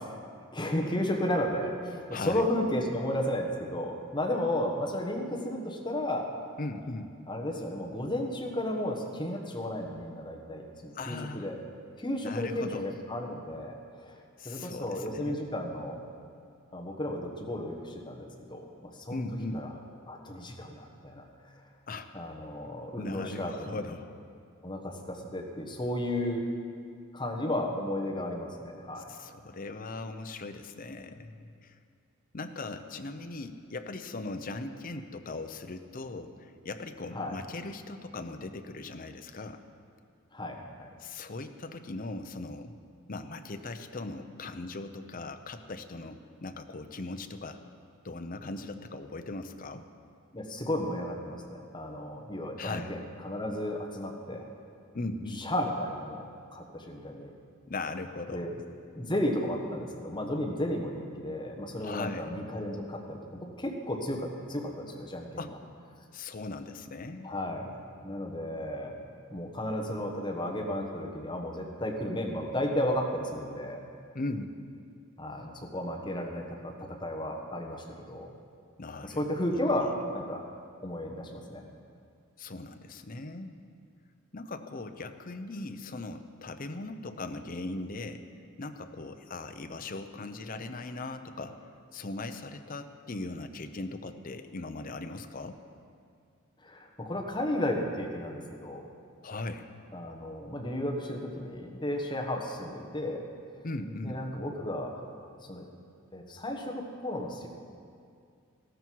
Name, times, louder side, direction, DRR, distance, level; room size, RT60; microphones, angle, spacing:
voice 1, 0.5-6.3 7.3-11.6 12.0-16.0 16.7-19.2 19.5-19.7 20.1-21.5 22.1-23.8 24.6-26.5 27.1-29.1 37.1-37.3 40.3-40.9 50.3-54.5 55.4-57.3 58.3-58.6 58.9-65.5 67.2-69.0 69.3-73.8 75.2-78.3 79.0-80.4 80.8-81.7 96.6-98.8 99.9-103.2 104.0-105.0 105.5-105.7 106.1-107.5, left 1 dB, 20° left, 1 dB, 1.3 m, -33 dB
voice 2, 2.1-2.4 6.6-7.1 10.9-11.5 12.2-12.8 14.4-15.4 19.1-19.7 21.9-22.1 23.0-24.1 29.0-31.8 32.3-39.6 41.0-42.7 43.1-47.6 48.0-49.8 52.6-53.0 54.9-55.5 57.7-58.5 61.8-62.4 65.4-65.6 66.1-67.3 74.1-74.5 78.8-79.2 79.5-79.6 82.4-83.6 84.3-88.2 88.6-91.6 91.9-95.6 99.2-99.7 103.6-104.2, left 2 dB, 40° left, 7 dB, 0.7 m, -39 dB
15.0 x 13.0 x 4.7 m, 2.3 s
head